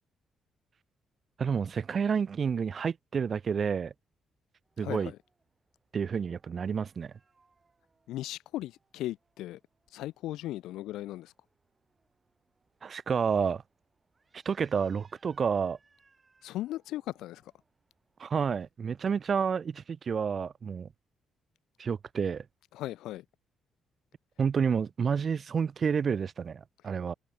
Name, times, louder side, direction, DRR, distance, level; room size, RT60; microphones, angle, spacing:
voice 1, 1.4-3.9 4.8-5.1 5.9-7.1 12.8-13.6 14.5-15.8 18.2-20.9 21.8-22.4 24.4-27.1, right 6 dB, 45° right, 0.5 m, -29 dB
sound 1, 4.6-18.2, right 4 dB, 30° right, 5.4 m, -71 dB
voice 2, 4.8-5.2 8.1-9.6 9.9-11.3 16.4-17.4 22.7-23.2, left 15 dB, 85° left, 0.6 m, -37 dB
cardioid pair, 85°, 0 cm